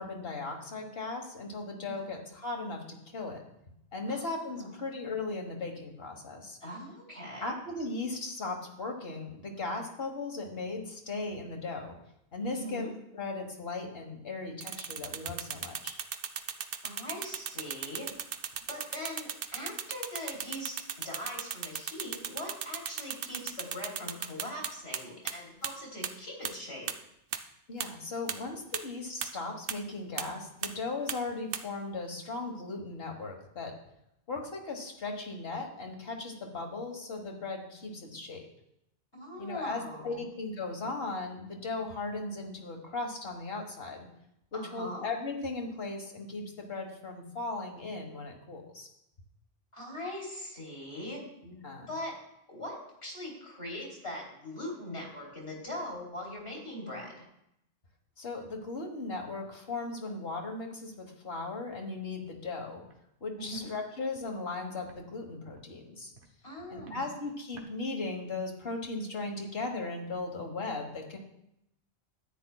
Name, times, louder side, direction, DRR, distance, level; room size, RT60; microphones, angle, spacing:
voice 1, 0.0-3.4 3.9-6.6 7.4-12.0 12.3-12.9 13.1-16.0 27.7-33.7 34.3-38.5 39.4-44.1 44.5-48.9 51.4-51.9 58.2-62.8 63.2-66.1 66.7-71.2, left 3 dB, 70° left, 2 dB, 1.6 m, -37 dB
voice 2, 4.1-4.7 6.6-7.5 12.5-12.9 16.8-18.1 18.7-20.7 21.0-26.9 39.1-40.2 44.5-45.0 49.7-51.2 51.9-52.1 52.5-57.3 63.4-63.7 66.4-67.0, left 1 dB, 85° left, -2 dB, 3.4 m, -41 dB
sound 1, 14.6-25.0 25.3-25.4 25.6-25.7 26.0-26.1 26.4-26.5 26.9-27.0 27.3-27.4 27.8-27.9 28.3-28.4 28.7-28.8 29.2-29.3 29.7-29.8 30.2-30.3 30.6-30.7 31.1-31.2 31.5-31.6, right 8 dB, 65° right, 0.8 m, -35 dB
Walk footsteps, 62.8-63.0 63.5-63.7 64.1-64.3 64.8-65.0 65.4-65.7 66.1-66.3 66.7-67.0 67.5-67.7, right 3 dB, 85° right, 1.3 m, -54 dB
13.5 x 9.4 x 2.3 m, 0.80 s
omnidirectional pair, 1.1 m